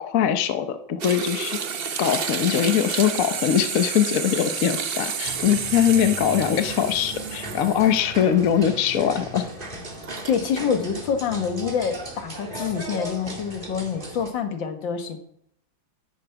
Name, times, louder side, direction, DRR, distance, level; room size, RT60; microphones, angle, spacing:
voice 1, 0.0-1.6 2.0-9.4, left 9 dB, 55° left, 9 dB, 1.2 m, -22 dB
sound 1, 1.0-8.2 8.6-8.7 9.9-10.4, right 6 dB, 50° right, 0.7 m, -30 dB
sound 2, 5.2-14.3, right 1 dB, 30° right, 2.5 m, -37 dB
voice 2, 10.3-15.2, left 7 dB, 80° left, 7 dB, 2.2 m, -26 dB
12.5 x 9.2 x 5.8 m, 0.73 s
omnidirectional pair, 2.0 m